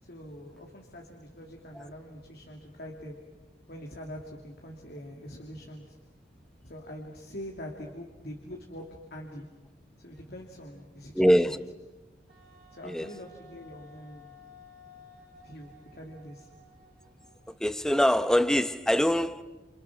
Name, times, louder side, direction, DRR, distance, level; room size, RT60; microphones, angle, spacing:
voice 1, 0.0-3.2 3.7-6.0 6.6-8.8 9.1-9.5 10.0-11.6 12.7-14.4 15.4-16.5, equal, 65° left, 2.8 m, -44 dB
voice 2, 11.1-11.6 12.8-13.1 17.6-19.4, equal, 5° left, 0.8 m, -23 dB
Wind instrument woodwind instrument, 12.3-17.8, left 2 dB, 55° right, 5.1 m, -55 dB
29.0 x 28.5 x 6.1 m
head